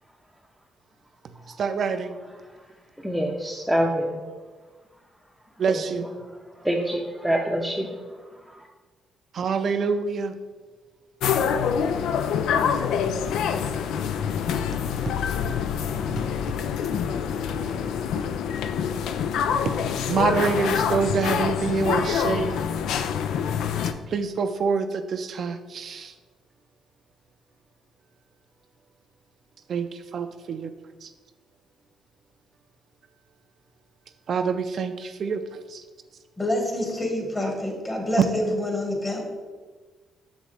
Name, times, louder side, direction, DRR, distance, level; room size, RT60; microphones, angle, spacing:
voice 1, 1.6-2.2 5.6-6.1 9.3-10.3 16.0-16.5 17.1-17.9 18.2-18.3 20.1-22.6 24.1-26.1 29.7-30.7 31.0-31.1 34.3-35.4 35.7-35.8, right 5 dB, 55° right, 8 dB, 0.4 m, -27 dB
voice 2, 3.0-4.2 5.7-5.8 6.6-7.9 8.5-8.6, equal, 5° right, -1 dB, 0.7 m, -25 dB
sound 1, 11.2-23.9, left 7 dB, 80° left, 0.4 m, -26 dB
voice 3, 36.4-39.2, left 1 dB, 20° left, 1 dB, 1.8 m, -27 dB
7.0 x 6.3 x 3.3 m, 1.4 s
cardioid pair, 90°, 0 cm